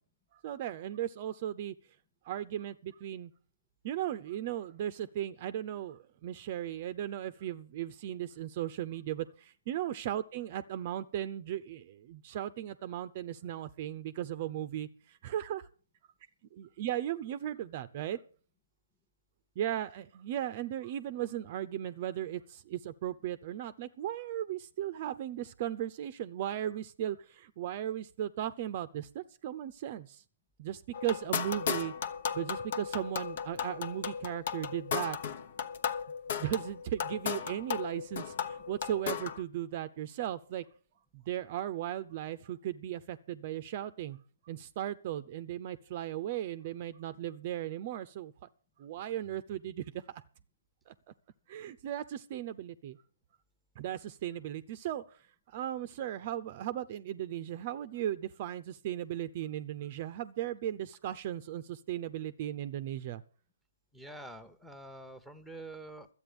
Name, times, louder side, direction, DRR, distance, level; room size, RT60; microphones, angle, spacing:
voice 1, 0.4-1.7 2.2-3.3 3.8-15.6 16.6-18.2 19.6-30.2 30.6-31.9 32.3-35.2 36.3-40.6 41.1-44.2 44.5-48.3 48.8-50.2 50.9-51.0 51.5-53.0 53.8-55.0 55.5-63.2, right 11 dB, 40° right, 13 dB, 0.6 m, -37 dB
sound 1, 30.9-39.4, left 7 dB, 55° left, 1.1 m, -36 dB
voice 2, 63.9-66.1, right 2 dB, ahead, 12 dB, 1.0 m, -46 dB
12.5 x 8.6 x 6.9 m, 0.41 s
hypercardioid pair, 140°, 0 cm